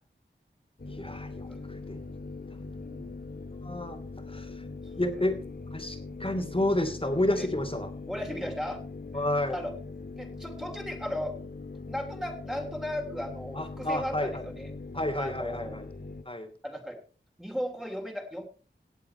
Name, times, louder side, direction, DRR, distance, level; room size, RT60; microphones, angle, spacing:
sound 1, 0.8-16.2, left 3 dB, 55° left, 1.9 m, -41 dB
voice 1, 0.8-2.0 3.6-4.0 4.3-4.5 5.0-5.4 5.7-7.9 9.1-9.6 13.5-14.4 14.9-15.8 16.3-16.5, left 1 dB, 25° left, 7 dB, 2.8 m, -30 dB
voice 2, 2.8-3.2 7.4-7.5 8.1-8.8 9.5-9.7 10.2-11.4 11.9-14.7 15.2-15.8 16.6-17.0 17.4-18.4, equal, 5° right, 1 dB, 3.3 m, -36 dB
18.0 x 7.5 x 4.4 m, 0.38 s
wide cardioid pair, 50°, 20 cm